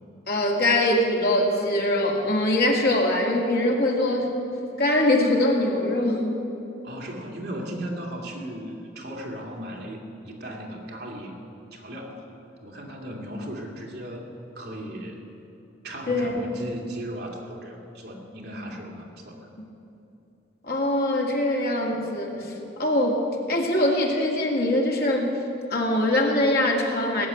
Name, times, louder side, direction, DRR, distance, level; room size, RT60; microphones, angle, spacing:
voice 1, 0.3-4.3 4.8-6.4 16.1-16.3 20.6-22.5 22.8-25.3 25.7-27.3, left 1 dB, 55° left, -1 dB, 2.1 m, -23 dB
voice 2, 6.8-11.4 11.7-14.3 14.5-15.2 15.8-19.5, equal, 60° right, -1 dB, 2.3 m, -36 dB
18.0 x 7.3 x 9.0 m, 2.9 s
head